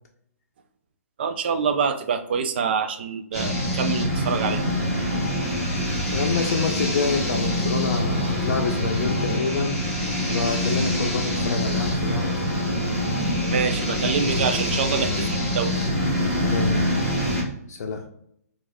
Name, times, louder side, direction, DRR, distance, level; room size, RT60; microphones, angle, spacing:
voice 1, 1.2-4.6 13.5-15.9, right 6 dB, 40° right, 8 dB, 0.4 m, -26 dB
sound 1, 3.3-17.4, left 1 dB, ahead, 1.1 m, -25 dB
voice 2, 6.1-9.8 10.2-12.3 16.4-17.1 17.7-18.0, left 4 dB, 70° left, 0 dB, 0.5 m, -27 dB
3.1 x 2.4 x 3.4 m, 0.70 s
hypercardioid pair, 165°, 9 cm